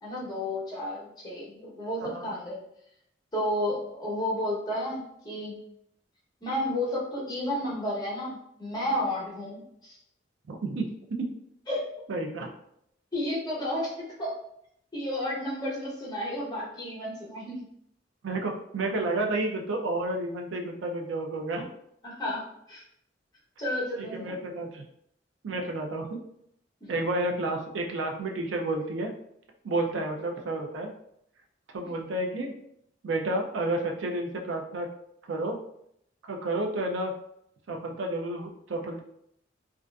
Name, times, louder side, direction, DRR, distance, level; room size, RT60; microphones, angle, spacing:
voice 1, 0.0-2.6 3.3-5.6 6.4-10.0 11.7-11.8 13.1-14.4 14.9-17.7 22.0-22.8 23.6-24.4 26.8-26.9 29.9-30.0 31.8-32.0, left 1 dB, 20° left, -6 dB, 0.8 m, -32 dB
voice 2, 10.5-11.2 12.1-12.5 18.2-21.7 24.0-24.8 25.4-26.2 26.9-29.1 29.6-30.9 31.7-32.5 33.0-34.9 35.3-35.6 36.2-37.1 37.7-39.0, right 2 dB, 80° right, 2 dB, 0.4 m, -31 dB
2.5 x 2.4 x 2.2 m, 0.73 s
head